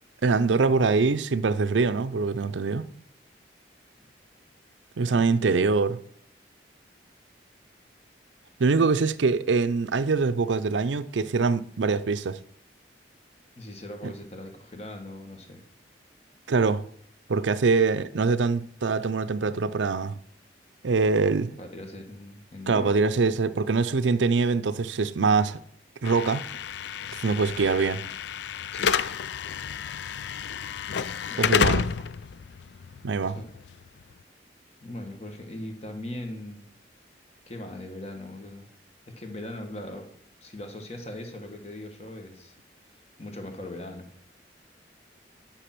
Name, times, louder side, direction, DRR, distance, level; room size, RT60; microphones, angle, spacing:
voice 1, 0.2-2.9 5.0-6.0 8.6-12.4 14.0-14.1 16.5-16.8 17.3-20.2 20.8-21.5 22.7-25.6 26.0-26.4 27.2-28.0 31.4-31.9 33.0-33.4, right 4 dB, 85° right, 0.5 m, -24 dB
voice 2, 5.0-5.6 13.6-15.6 21.6-23.0 28.7-29.0 31.3-31.8 33.4-33.5 34.8-36.6 37.5-38.7 39.2-40.1 40.4-42.6 43.2-44.1, left 1 dB, 35° left, 1.7 m, -40 dB
Slam / Alarm, 26.0-34.1, left 6 dB, 75° left, 0.4 m, -30 dB
10.0 x 5.9 x 6.0 m
head